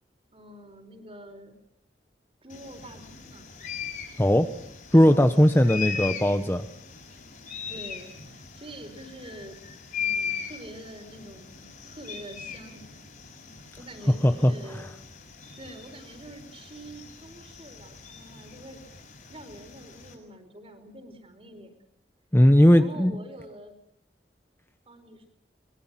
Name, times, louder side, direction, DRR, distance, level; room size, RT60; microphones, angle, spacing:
voice 1, 0.3-1.5 2.4-3.4 5.6-6.1 7.1-7.2 7.7-9.6 10.0-12.9 13.8-14.9 15.6-18.8 19.3-21.7 22.7-23.8 24.9-25.3, right 1 dB, 35° right, 7 dB, 4.7 m, -45 dB
sound 1, 2.5-20.1, left 7 dB, 50° left, 6.6 m, -39 dB
voice 2, 4.2-4.5 4.9-6.7 14.2-14.5 22.3-23.1, equal, 15° left, 8 dB, 1.0 m, -18 dB
24.5 x 22.5 x 7.5 m, 0.73 s
head